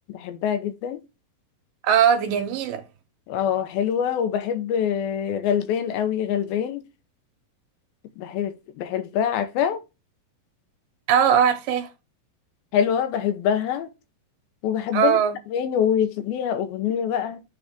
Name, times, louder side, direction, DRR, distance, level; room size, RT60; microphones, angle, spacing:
voice 1, 0.1-1.0 3.3-6.8 8.2-9.8 12.7-13.9 14.6-15.2 15.5-17.4, left 8 dB, 85° left, 2.8 m, -25 dB
voice 2, 1.8-2.8 11.1-11.9 14.9-15.4, right 8 dB, 75° right, 2.6 m, -20 dB
9.4 x 4.1 x 3.6 m
omnidirectional pair, 4.2 m